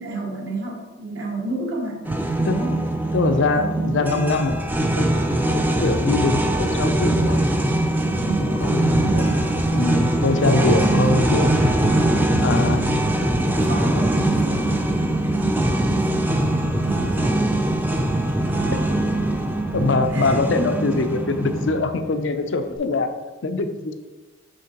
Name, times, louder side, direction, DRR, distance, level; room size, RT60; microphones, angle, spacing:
voice 1, 0.0-2.0 2.5-2.8 3.5-4.1 8.0-9.4 10.5-11.1 11.4-11.5 12.5-13.0 13.6-17.6 18.5-19.0 20.1-20.4, right 2 dB, 70° right, -2 dB, 1.4 m, -30 dB
sound 1, 2.0-21.8, right 1 dB, 10° right, 0.4 m, -22 dB
voice 2, 3.1-5.3 5.5-7.4 8.4-9.3 9.7-11.5 12.4-13.5 19.7-23.9, left 3 dB, 65° left, 8 dB, 0.5 m, -23 dB
sound 2, 4.1-22.8, left 2 dB, 45° right, 1.6 m, -42 dB
sound 3, 6.4-20.1, right 2 dB, 90° right, 0.6 m, -37 dB
6.3 x 6.0 x 2.9 m, 1.2 s
head